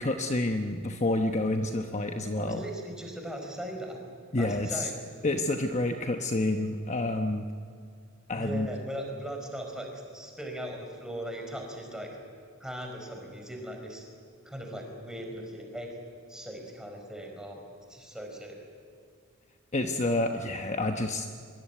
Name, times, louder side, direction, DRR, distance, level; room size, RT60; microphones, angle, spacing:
voice 1, 0.0-2.6 4.3-4.9 5.2-7.5 8.3-8.7 19.7-21.3, left 2 dB, 30° left, 5 dB, 1.0 m, -28 dB
voice 2, 2.4-4.0 4.4-5.0 8.3-12.2 12.6-14.0 14.4-16.0 16.3-17.6 17.9-18.6, equal, 5° right, 2 dB, 4.6 m, -39 dB
24.5 x 23.0 x 9.3 m, 2.3 s
head